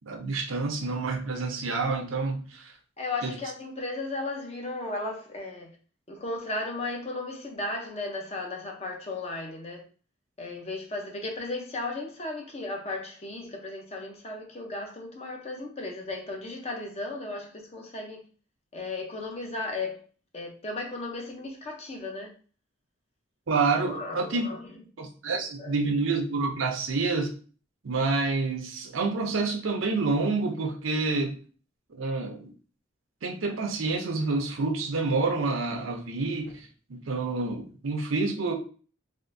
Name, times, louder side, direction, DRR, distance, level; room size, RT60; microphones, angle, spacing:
voice 1, 0.1-2.7 3.2-3.3 23.5-24.5 25.0-27.3 27.8-31.4 31.9-32.5 33.2-38.5, right 3 dB, 80° right, 0.6 m, -28 dB
voice 2, 3.0-5.7 6.1-9.8 10.4-18.2 18.7-20.0 20.3-22.3 23.8-24.7 25.3-25.7, left 2 dB, 30° left, 0.6 m, -35 dB
3.5 x 2.5 x 2.6 m
head